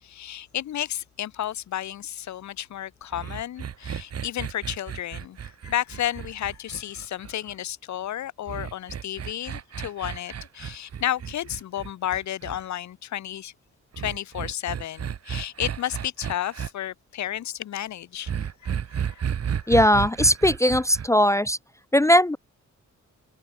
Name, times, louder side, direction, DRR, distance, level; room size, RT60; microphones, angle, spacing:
voice 1, 0.0-13.5 14.0-19.3 19.6-19.7, left 12 dB, 75° left, 0.8 m, -32 dB
sound 1, 3.1-7.5 8.5-12.6 13.9-16.7 18.3-21.1, right 8 dB, 60° right, 2.5 m, -33 dB
voice 2, 19.7-21.6 21.9-22.4, equal, 10° left, 0.4 m, -19 dB
wide cardioid pair, 155°, 29 cm